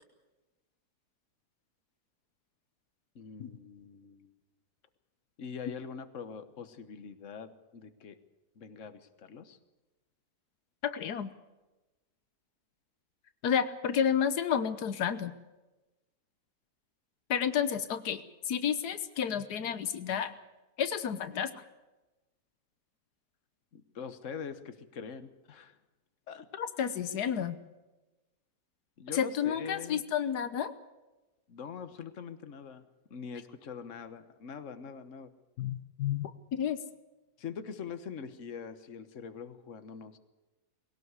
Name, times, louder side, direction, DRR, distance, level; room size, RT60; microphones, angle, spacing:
voice 1, 3.1-4.3 5.4-8.2 8.6-9.6 23.7-25.8 26.3-26.5 29.0-30.0 31.5-32.8 33.1-35.3 37.4-40.2, left 6 dB, 55° left, 10 dB, 1.5 m, -43 dB
voice 2, 10.8-11.3 13.4-15.3 17.3-20.3 20.8-21.6 26.6-27.6 29.1-30.7 35.6-36.8, left 8 dB, 90° left, 11 dB, 1.5 m, -31 dB
20.5 x 17.5 x 8.2 m, 1.1 s
omnidirectional pair, 1.7 m